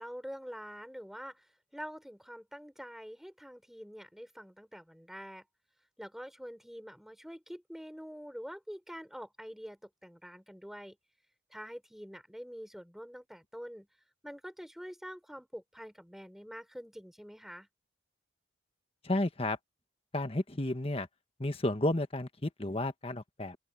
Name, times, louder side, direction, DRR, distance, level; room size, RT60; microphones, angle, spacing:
voice 1, 0.0-5.4 6.0-11.0 11.5-13.9 14.2-17.7, equal, ahead, 5.2 m, -46 dB
voice 2, 19.0-19.6 20.1-21.1 21.4-23.6, left 1 dB, 30° left, 1.4 m, -32 dB
open air
head